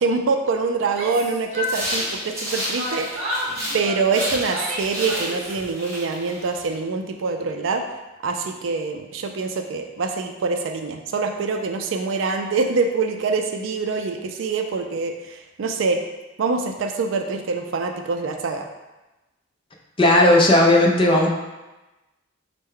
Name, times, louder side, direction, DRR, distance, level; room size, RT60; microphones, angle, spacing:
voice 1, 0.0-3.4 3.7-7.8 8.2-16.0 16.4-18.7, right 4 dB, 70° right, 5 dB, 0.4 m, -25 dB
Yell, 0.8-2.4 2.8-5.6, left 1 dB, 35° right, 0.8 m, -31 dB
sound 1, 1.6-3.8 4.1-6.7, equal, 15° right, 1.1 m, -31 dB
voice 2, 20.0-21.3, left 1 dB, 25° left, -1 dB, 0.5 m, -15 dB
4.3 x 2.1 x 3.7 m, 1.1 s
head